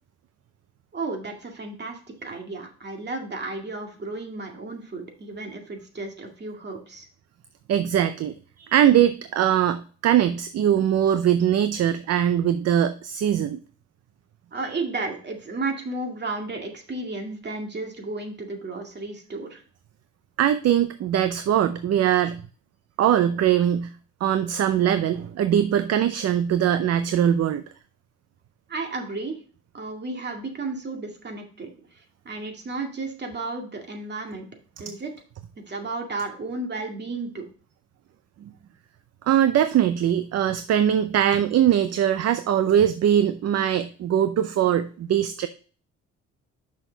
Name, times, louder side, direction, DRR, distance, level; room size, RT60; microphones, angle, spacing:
voice 1, 0.9-7.1 14.5-19.6 28.7-29.4 29.7-34.5 34.8-35.1 35.6-37.5, right 3 dB, 35° right, 3 dB, 2.1 m, -33 dB
voice 2, 7.7-13.6 20.4-22.4 23.0-23.9 24.2-27.6 39.3-45.5, right 10 dB, 55° right, 12 dB, 0.6 m, -21 dB
6.3 x 6.1 x 3.9 m, 0.40 s
cardioid pair, 90°, 30 cm